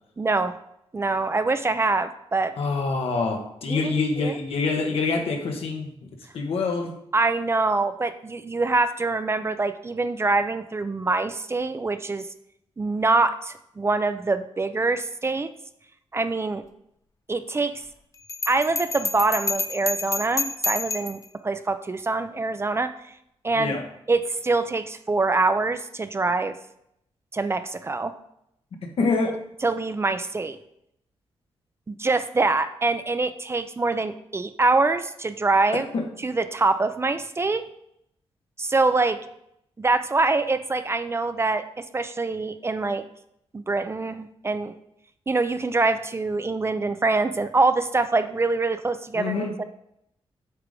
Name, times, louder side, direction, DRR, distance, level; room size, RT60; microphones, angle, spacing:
voice 1, 0.2-0.6 0.9-2.5 3.7-3.8 4.2-4.3 7.1-12.3 12.8-15.5 16.1-16.6 17.3-17.7 18.5-22.9 23.4-23.7 24.1-26.5 27.3-28.1 29.6-30.6 31.9-35.8 36.2-37.6 38.6-39.2 39.8-43.0 43.5-44.7 45.3-49.6, right 3 dB, 25° right, 10 dB, 0.5 m, -24 dB
voice 2, 2.6-6.1 6.3-6.9 23.5-23.8 28.8-29.4 35.9-36.1 49.1-49.5, left 4 dB, 75° left, 3 dB, 1.3 m, -26 dB
Bell, 18.3-21.3, left 3 dB, 30° left, 0.5 m, -28 dB
8.2 x 3.6 x 5.1 m, 0.75 s
cardioid pair, 100°, 10 cm